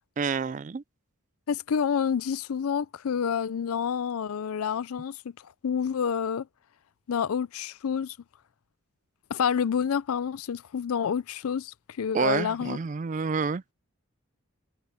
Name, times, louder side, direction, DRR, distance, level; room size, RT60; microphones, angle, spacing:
voice 1, 0.2-0.8 12.1-13.6, right 5 dB, 35° right, 0.3 m, -28 dB
voice 2, 1.5-6.5 7.1-8.2 9.3-12.8, left 7 dB, 90° left, 0.4 m, -28 dB
head